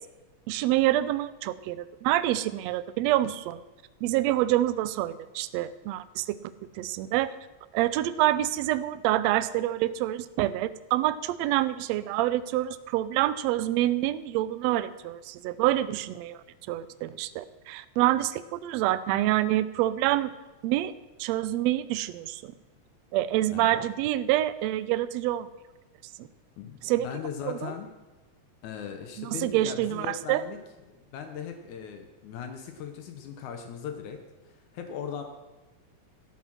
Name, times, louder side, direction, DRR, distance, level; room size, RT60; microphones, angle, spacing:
voice 1, 0.5-3.6 4.0-6.4 6.7-7.3 7.7-16.4 16.7-20.3 20.6-20.9 21.2-22.5 23.1-25.5 26.2-26.3 26.8-27.1 27.5-27.7 29.2-30.4, right 14 dB, 80° right, 14 dB, 1.6 m, -27 dB
voice 2, 26.6-27.9 28.6-30.6 30.9-34.2 34.4-35.2, left 7 dB, 85° left, 5 dB, 2.4 m, -38 dB
14.0 x 8.4 x 6.1 m, 1.2 s
omnidirectional pair, 3.3 m